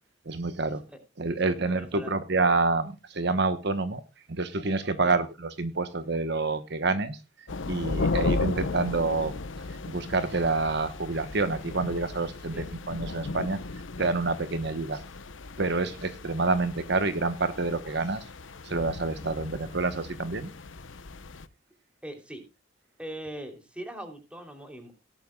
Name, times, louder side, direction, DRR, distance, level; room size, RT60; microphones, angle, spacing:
voice 1, 0.3-0.8 1.2-4.0 4.3-7.2 7.7-9.3 9.9-13.6 14.0-15.0 15.6-18.2 18.6-20.5, right 3 dB, 60° right, 11 dB, 1.1 m, -28 dB
voice 2, 1.3-2.1 5.0-5.2 12.5-12.7 15.8-16.0 22.0-22.4 23.0-24.9, right 1 dB, 5° right, 5 dB, 3.1 m, -41 dB
sound 1, 7.5-21.5, left 3 dB, 85° left, 0.9 m, -35 dB
18.0 x 11.5 x 2.3 m, 0.26 s
head